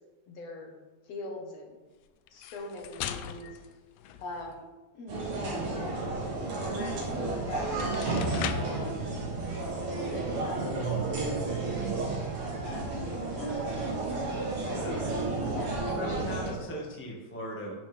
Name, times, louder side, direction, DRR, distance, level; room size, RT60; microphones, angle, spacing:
voice 1, 0.3-0.8 1.0-1.8 2.3-3.6 4.2-4.6 4.9-5.8 6.5-8.1 8.4-9.6 10.0-11.4 11.7-12.2 12.6-13.8 14.6-14.9 15.4-16.7, left 2 dB, 65° left, 1 dB, 2.3 m, -42 dB
sound 1, 2.3-4.7 7.1-7.2 7.6-8.8, left 10 dB, 80° left, 1.5 m, -39 dB
sound 2, 5.1-16.5, right 3 dB, 55° right, 2.3 m, -32 dB
voice 2, 14.7-15.1 15.9-17.7, equal, 10° left, -2 dB, 0.6 m, -38 dB
11.0 x 6.2 x 3.5 m, 1.2 s
omnidirectional pair, 3.3 m